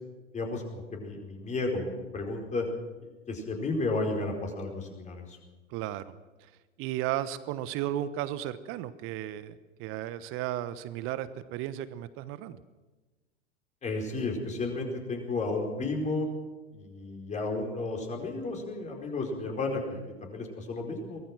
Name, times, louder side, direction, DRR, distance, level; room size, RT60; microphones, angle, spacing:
voice 1, 0.3-2.7 3.3-5.4 13.8-16.3 16.7-21.2, left 3 dB, 20° left, 2 dB, 4.6 m, -33 dB
voice 2, 5.7-6.1 6.4-6.5 6.8-12.6, right 12 dB, 35° right, 15 dB, 1.1 m, -34 dB
23.5 x 19.5 x 6.1 m, 1.2 s
figure-of-eight pair, 90°, 35 cm